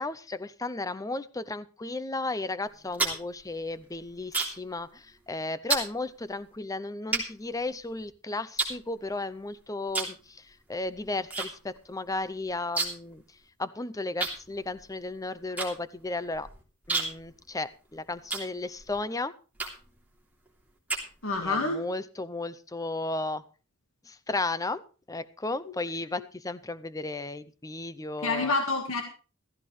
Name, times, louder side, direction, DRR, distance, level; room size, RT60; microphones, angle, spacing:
voice 1, 0.0-13.2 13.6-16.5 16.9-19.3 21.4-23.4 24.0-24.8 25.1-28.5, left 2 dB, 15° left, 16 dB, 0.6 m, -34 dB
sound 1, 2.7-4.7 5.0-5.3 5.7-5.9 6.5-6.6 7.1-8.1 8.6-9.4 9.9-10.2 10.5-11.5 11.8-11.9 12.1-13.1 13.4-13.5 14.2-19.0 19.5-20.0 20.5-21.5, right 3 dB, 10° right, 3.0 m, -32 dB
voice 2, 21.2-21.8 28.2-29.0, left 3 dB, 80° left, 4 dB, 1.7 m, -27 dB
15.0 x 14.0 x 3.2 m, 0.35 s
head